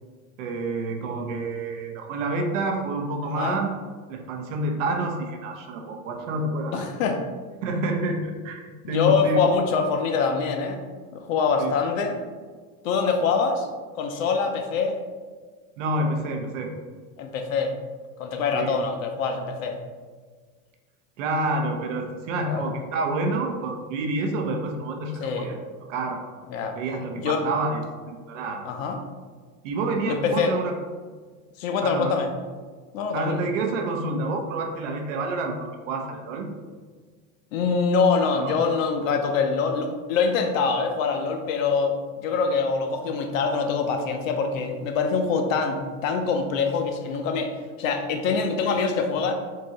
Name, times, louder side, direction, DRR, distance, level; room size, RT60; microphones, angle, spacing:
voice 1, 0.4-3.7 4.1-6.8 7.6-8.6 8.9-9.4 11.6-11.7 15.8-16.7 18.5-18.8 21.2-25.6 25.9-26.2 26.7-28.7 29.6-30.8 31.8-32.2 33.1-36.5 38.4-38.5, right 2 dB, 55° right, 3 dB, 0.6 m, -28 dB
voice 2, 3.2-3.6 6.7-7.2 8.8-10.8 11.1-12.2 12.8-13.7 13.9-15.0 17.2-17.7 18.2-19.8 22.5-22.7 25.2-25.5 26.5-26.8 27.2-27.5 28.6-29.0 30.1-30.6 31.6-32.3 32.9-33.4 37.5-49.3, left 5 dB, 60° left, 5 dB, 0.6 m, -24 dB
3.8 x 2.8 x 3.9 m, 1.5 s
supercardioid pair, 175°, 46 cm